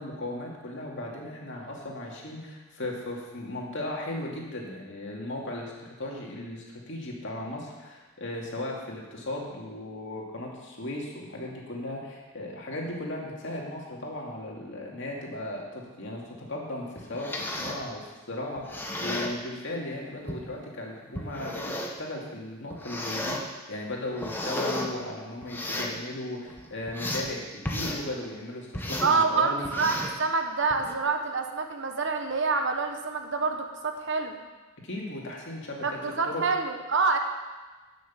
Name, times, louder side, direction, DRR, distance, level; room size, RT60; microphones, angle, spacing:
voice 1, 0.0-27.4 27.7-29.7 34.8-35.8 36.2-36.5, left 1 dB, 60° left, -2 dB, 2.3 m, -36 dB
sound 1, 17.0-17.8 18.6-19.4 20.3-20.4 21.1-22.0 22.7-23.4 23.9-24.9 25.4-26.0 26.5-27.3 27.6-28.0 28.7-29.1 29.6-30.2 30.7-30.9, left 1 dB, 10° left, 1.0 m, -33 dB
voice 2, 29.0-34.3 35.8-37.2, right 4 dB, 55° right, 5 dB, 1.1 m, -27 dB
11.0 x 6.5 x 7.3 m, 1.3 s
head